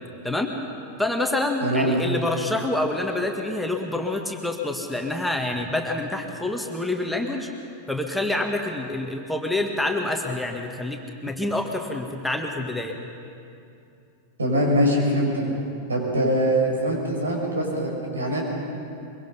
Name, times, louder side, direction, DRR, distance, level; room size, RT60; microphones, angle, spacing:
voice 1, 1.0-7.5 7.9-13.0, left 2 dB, ahead, 2 dB, 1.7 m, -27 dB
voice 2, 1.6-2.0 14.4-15.4 15.9-18.4, equal, 75° right, 0 dB, 5.3 m, -23 dB
23.5 x 23.0 x 5.6 m, 2.6 s
figure-of-eight pair, 90°, 0 cm